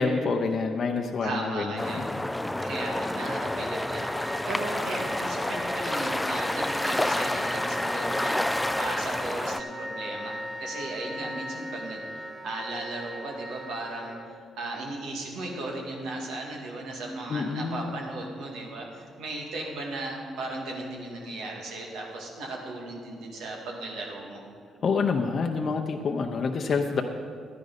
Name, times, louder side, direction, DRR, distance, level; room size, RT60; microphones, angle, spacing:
voice 1, 0.0-2.2 17.3-18.0 24.8-27.0, left 4 dB, 55° left, 4 dB, 0.7 m, -27 dB
voice 2, 1.2-2.1 2.6-12.0 12.4-24.4, right 2 dB, 80° right, -1 dB, 2.0 m, -36 dB
sound 1, 1.8-9.6, left 1 dB, 10° left, 0.4 m, -29 dB
Wind instrument woodwind instrument, 2.7-14.2, equal, 10° right, 2.4 m, -38 dB
12.0 x 10.5 x 4.1 m, 2.2 s
supercardioid pair, 55°, 0 cm